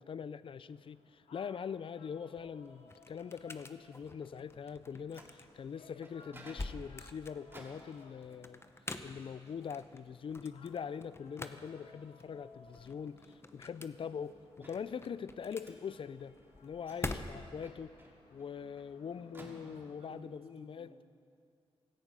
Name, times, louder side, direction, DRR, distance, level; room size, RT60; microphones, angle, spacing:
voice 1, 0.0-8.6 9.0-16.3 16.6-17.9 18.3-21.0, left 7 dB, 60° left, 16 dB, 0.4 m, -43 dB
sound 1, 0.7-19.9, left 4 dB, 80° left, 1.4 m, -63 dB
sound 2, 2.2-17.7, left 2 dB, 25° left, 0.9 m, -47 dB
Microwave oven, 4.8-20.2, right 1 dB, 20° right, 2.4 m, -60 dB
voice 2, 19.3-21.0, right 3 dB, 65° right, 2 dB, 2.0 m, -57 dB
16.5 x 14.0 x 5.5 m, 2.3 s
cardioid pair, 70°, 10 cm